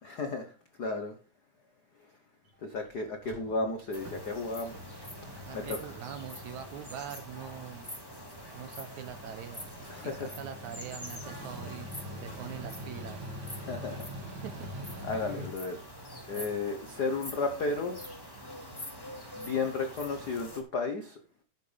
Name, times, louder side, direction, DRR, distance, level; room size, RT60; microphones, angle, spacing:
voice 1, 0.0-1.1 2.6-4.8 5.3-5.8 9.9-10.4 13.6-14.1 15.0-15.8 16.3-18.0 19.3-21.2, left 3 dB, 85° left, 5 dB, 0.8 m, -33 dB
Mechanical fan, 2.5-2.6 2.8-2.9 3.1-15.5, equal, 40° right, 2.6 m, -45 dB
sound 1, 3.9-20.6, equal, 10° left, 1.7 m, -45 dB
voice 2, 5.5-7.9 8.6-11.9 12.2-13.3 14.4-14.7 16.3-16.6, right 9 dB, 75° right, 8 dB, 2.1 m, -43 dB
12.0 x 9.2 x 3.4 m, 0.36 s
omnidirectional pair, 3.5 m